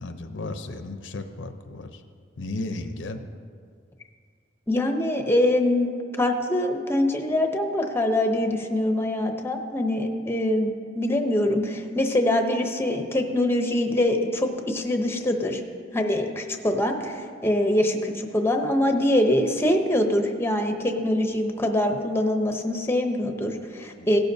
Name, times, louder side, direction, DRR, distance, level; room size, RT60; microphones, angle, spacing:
voice 1, 0.0-2.0 2.4-3.2 24.0-24.2, left 2 dB, 70° left, 8 dB, 0.7 m, -34 dB
voice 2, 4.7-5.9 6.2-15.6 15.9-24.2, left 1 dB, 15° left, 4 dB, 0.7 m, -24 dB
16.5 x 12.0 x 2.7 m, 2.2 s
head